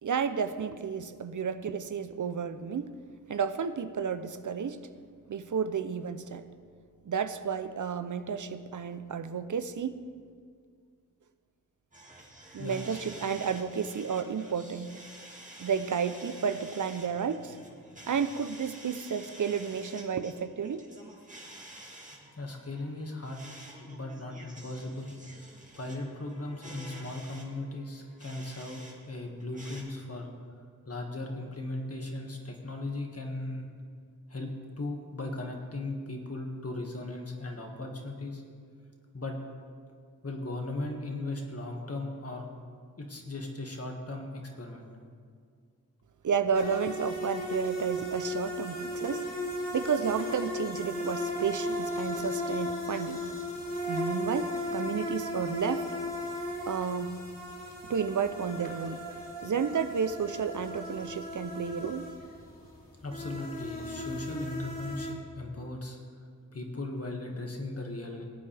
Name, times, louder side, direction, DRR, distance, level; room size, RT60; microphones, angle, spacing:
voice 1, 0.0-2.9 3.3-4.8 5.3-6.4 7.0-9.9 12.5-14.9 15.6-17.6 18.1-20.9 46.2-49.3 49.7-53.2 53.9-55.9 56.7-57.2 57.8-59.0 59.4-62.1, right 6 dB, 65° right, 11 dB, 0.6 m, -32 dB
sound 1, 11.9-28.9 29.2-29.8, right 1 dB, 20° right, 2.2 m, -50 dB
voice 2, 12.6-13.0 22.4-23.4 23.7-25.1 25.8-30.3 30.9-33.6 34.3-38.4 39.1-39.4 40.2-42.5 43.0-44.8 63.0-66.0 66.5-68.2, left 2 dB, 45° left, 1 dB, 1.9 m, -37 dB
sound 2, 46.5-65.1, left 1 dB, 25° left, 3.0 m, -36 dB
18.5 x 8.6 x 3.4 m, 2.1 s
cardioid pair, 45°, 34 cm